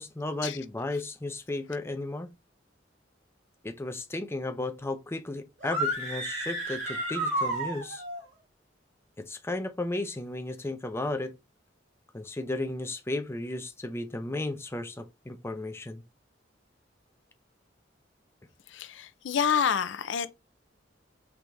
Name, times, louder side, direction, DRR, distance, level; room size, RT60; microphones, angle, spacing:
voice 1, 0.0-2.3 3.6-8.0 9.2-11.3 12.1-16.0, left 2 dB, 15° left, 0.5 m, -34 dB
sound 1, 5.6-8.2, right 1 dB, 85° right, 2.6 m, -31 dB
voice 2, 18.7-20.3, left 7 dB, 75° left, 0.4 m, -28 dB
4.7 x 3.5 x 2.6 m
head